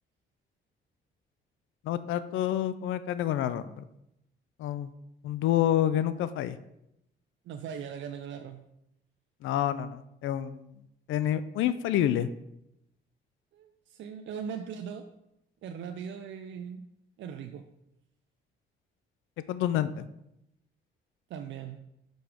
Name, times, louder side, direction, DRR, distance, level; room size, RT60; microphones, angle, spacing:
voice 1, 1.9-3.8 4.6-4.9 5.2-6.6 9.4-10.6 11.1-12.3 19.5-20.1, left 11 dB, 80° left, 14 dB, 0.4 m, -28 dB
voice 2, 7.5-8.6 13.5-15.1 15.6-16.8 17.2-17.6 21.3-21.8, right 7 dB, 70° right, 6 dB, 0.5 m, -39 dB
5.9 x 5.3 x 5.0 m, 0.83 s
cardioid pair, 90°, 20 cm